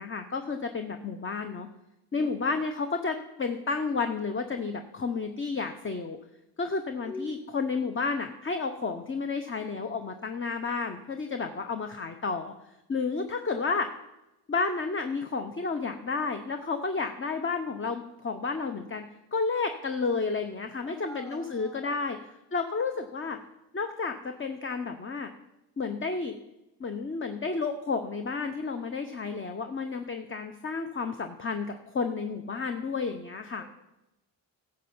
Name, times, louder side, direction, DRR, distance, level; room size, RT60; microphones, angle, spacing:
voice 1, 0.0-1.7 2.1-6.2 6.6-12.5 12.9-13.9 14.5-19.0 19.3-22.2 22.5-23.4 23.7-25.3 25.8-26.4 26.8-33.7, left 4 dB, 25° left, 7 dB, 0.8 m, -31 dB
voice 2, 7.0-7.4 20.8-22.1 33.6-33.7, left 2 dB, 5° left, 4 dB, 2.3 m, -43 dB
11.0 x 6.8 x 7.1 m, 0.93 s
cardioid pair, 80°, 44 cm